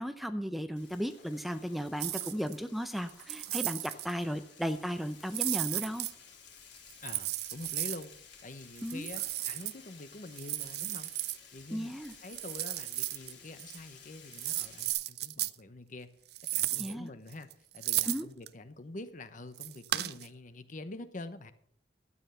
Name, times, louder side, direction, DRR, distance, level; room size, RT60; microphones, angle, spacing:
voice 1, 0.0-6.1 8.8-9.1 11.7-12.1 16.8-17.1 18.1-18.3, equal, ahead, 9 dB, 0.6 m, -35 dB
Frying (food), 0.8-14.9, left 6 dB, 75° left, 3.6 m, -55 dB
sound 1, 2.0-2.6 3.1-4.1 5.3-6.1 6.9-8.0 8.8-9.7 10.4-11.4 12.0-13.3 13.6-13.8 14.3-15.5 16.3-16.9 17.3-18.5 19.6-20.3, right 16 dB, 65° right, 0.5 m, -34 dB
voice 2, 7.0-8.1 8.4-11.1 11.5-16.1 16.5-21.5, left 2 dB, 45° left, 11 dB, 1.0 m, -46 dB
12.5 x 9.1 x 5.7 m, 0.64 s
head